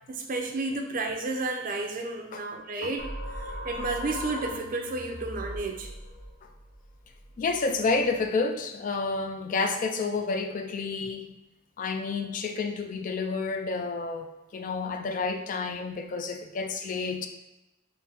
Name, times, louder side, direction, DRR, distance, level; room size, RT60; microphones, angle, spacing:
voice 1, 0.1-5.9, right 3 dB, 45° right, 4 dB, 0.5 m, -32 dB
sound 1, 3.0-8.3, equal, 75° left, 1.0 m, -39 dB
voice 2, 7.4-11.3 11.8-17.3, left 4 dB, 45° left, 6 dB, 0.3 m, -30 dB
3.8 x 2.0 x 4.2 m, 1.0 s
head